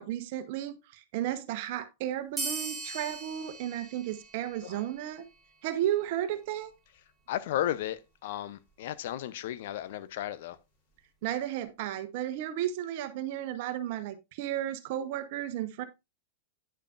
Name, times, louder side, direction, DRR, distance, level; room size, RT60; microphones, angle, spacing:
voice 1, 0.0-5.2 5.6-6.7 11.2-15.8, right 12 dB, 55° right, 1.0 m, -33 dB
sound 1, 2.4-5.4, right 3 dB, 5° right, 3.6 m, -39 dB
voice 2, 7.3-10.6, left 12 dB, 60° left, 0.6 m, -34 dB
9.8 x 6.7 x 2.5 m
hypercardioid pair, 100°, 0 cm